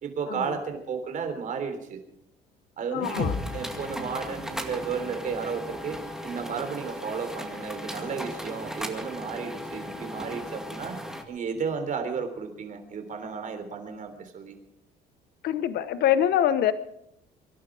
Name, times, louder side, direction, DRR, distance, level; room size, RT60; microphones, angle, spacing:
voice 1, 0.0-2.0 2.8-11.0 11.3-14.6, right 6 dB, 50° right, 7 dB, 3.4 m, -33 dB
voice 2, 2.9-3.3 15.4-16.7, left 10 dB, 70° left, 13 dB, 1.0 m, -24 dB
sound 1, 3.0-11.2, equal, 5° right, 2.2 m, -37 dB
sound 2, 3.2-7.2, left 5 dB, 50° left, 1.9 m, -38 dB
24.0 x 11.5 x 4.9 m, 0.76 s
cardioid pair, 110°, 17 cm